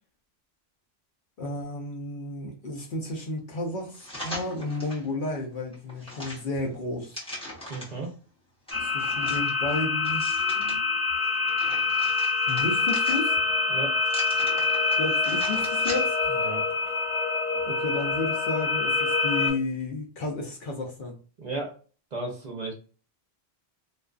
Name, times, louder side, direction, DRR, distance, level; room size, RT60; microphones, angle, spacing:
voice 1, 1.4-7.2 8.8-10.3 12.5-13.4 15.0-16.2 17.7-21.2, left 2 dB, 60° left, 0.7 m, -32 dB
sound 1, 3.9-5.1 5.5-8.1 8.7-10.8 11.2-13.5 14.0-16.3 16.7-16.8, left 1 dB, 5° left, 0.9 m, -41 dB
voice 2, 7.7-8.1 13.7-14.0 16.4-16.6 21.4-21.7 22.1-22.7, right 3 dB, 50° right, 0.7 m, -34 dB
sound 2, 8.7-19.5, left 4 dB, 40° left, 1.1 m, -26 dB
2.4 x 2.3 x 2.3 m
omnidirectional pair, 1.1 m